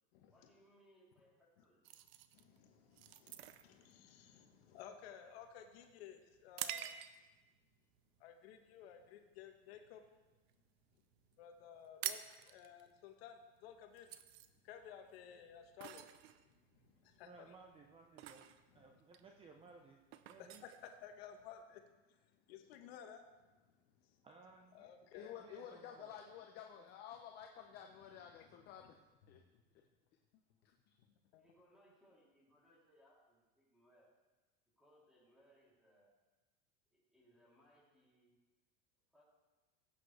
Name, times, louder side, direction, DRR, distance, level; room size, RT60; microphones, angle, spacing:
voice 1, 0.3-1.9 31.3-34.1 34.8-36.1 36.9-38.3 39.1-39.2, equal, ahead, -6 dB, 3.3 m, -69 dB
sound 1, 1.8-7.5 8.0-8.2 8.7-9.1 9.4-10.6 10.8-10.9 11.1-11.3 11.6-21.6, right 12 dB, 70° right, 0.7 m, -49 dB
voice 2, 2.3-6.9 8.2-10.0 11.4-14.1 14.6-16.1 16.4-17.5 21.0-24.2 24.7-25.4 28.4-28.9 29.3-29.4 31.3-31.4, left 8 dB, 70° left, 5 dB, 1.3 m, -56 dB
voice 3, 17.2-18.5 18.7-20.0 20.3-20.6 24.2-26.1, right 4 dB, 15° right, 2 dB, 0.6 m, -60 dB
voice 4, 25.1-29.0 29.3-29.4, left 9 dB, 30° left, 3 dB, 0.7 m, -52 dB
17.0 x 8.4 x 3.3 m, 1.2 s
supercardioid pair, 155°, 32 cm